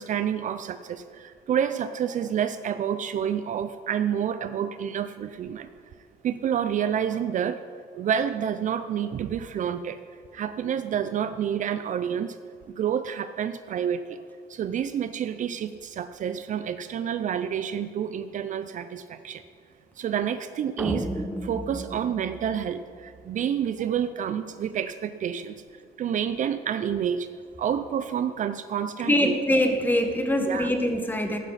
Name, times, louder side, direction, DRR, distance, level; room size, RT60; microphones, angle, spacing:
voice 1, 0.0-5.7 6.2-7.6 7.9-10.0 10.3-12.4 12.7-19.4 20.0-25.6 26.0-27.3 27.6-29.4 30.4-30.7, right 8 dB, 50° right, 11 dB, 0.5 m, -29 dB
sound 1, 20.8-23.2, right 1 dB, 5° right, 0.9 m, -34 dB
voice 2, 29.0-31.4, left 1 dB, 10° left, 4 dB, 1.6 m, -23 dB
15.0 x 11.5 x 4.2 m, 2.3 s
cardioid pair, 110°, 17 cm